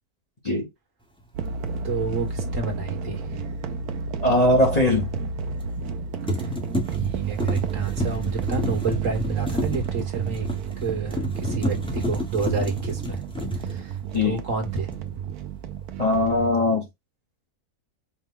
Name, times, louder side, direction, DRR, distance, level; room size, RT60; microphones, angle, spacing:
sound 1, 1.3-16.5, right 6 dB, 85° right, 1.1 m, -31 dB
voice 1, 1.8-3.4 6.4-6.5 7.0-10.5 10.8-13.2 13.6-14.0 14.2-14.9, right 4 dB, 60° right, 1.6 m, -29 dB
sound 2, 2.3-2.5 5.6-6.0 6.3-14.5 14.8-15.2, equal, 5° left, 0.8 m, -31 dB
voice 2, 4.2-5.1 14.1-14.4 16.0-16.9, left 1 dB, 30° left, 0.9 m, -20 dB
4.9 x 2.2 x 3.6 m
omnidirectional pair, 1.6 m